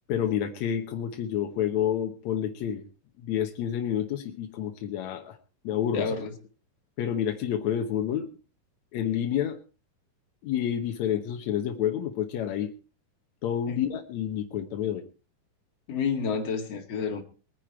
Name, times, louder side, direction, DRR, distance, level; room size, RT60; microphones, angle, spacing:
voice 1, 0.1-2.8 3.2-5.4 5.6-6.1 7.0-8.3 8.9-9.6 10.4-12.7 13.4-15.0, left 9 dB, 70° left, 5 dB, 1.8 m, -29 dB
voice 2, 5.9-6.3 13.7-13.8 15.9-17.2, left 5 dB, 45° left, 3 dB, 2.8 m, -29 dB
22.0 x 10.0 x 4.4 m, 0.36 s
omnidirectional pair, 4.6 m